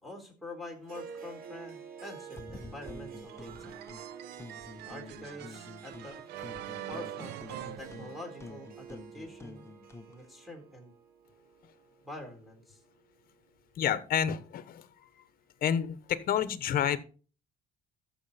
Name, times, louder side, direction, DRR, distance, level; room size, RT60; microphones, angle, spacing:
voice 1, 0.0-3.8 4.9-6.2 6.9-9.7 10.1-10.9 12.0-12.8, left 1 dB, ahead, 3 dB, 3.7 m, -46 dB
Harp, 0.8-13.4, right 7 dB, 60° right, 2.0 m, -50 dB
sound 1, 2.3-4.0 4.4-6.1 6.4-10.1, left 2 dB, 15° left, 1.0 m, -48 dB
sound 2, 3.3-8.7, right 11 dB, 80° right, 0.8 m, -44 dB
voice 2, 13.8-15.2 15.6-17.0, left 9 dB, 60° left, 13 dB, 1.1 m, -30 dB
14.0 x 6.1 x 4.2 m, 0.36 s
cardioid pair, 110°, 17 cm